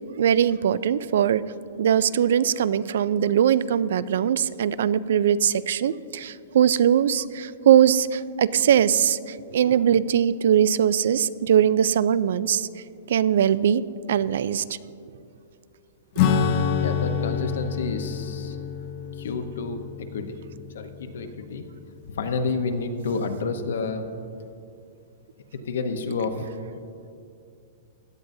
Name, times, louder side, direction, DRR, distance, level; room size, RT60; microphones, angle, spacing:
voice 1, 0.2-1.4 1.8-12.7 13.1-13.8 14.1-14.6, right 9 dB, 65° right, 17 dB, 0.3 m, -21 dB
Acoustic guitar / Strum, 16.2-22.1, left 7 dB, 35° left, 0.6 m, -27 dB
voice 2, 16.8-18.6 19.2-20.4 20.7-21.6 22.1-24.1 25.7-26.4, left 4 dB, 80° left, 7 dB, 0.9 m, -29 dB
16.5 x 10.5 x 2.7 m, 2.5 s
supercardioid pair, 175°, 0 cm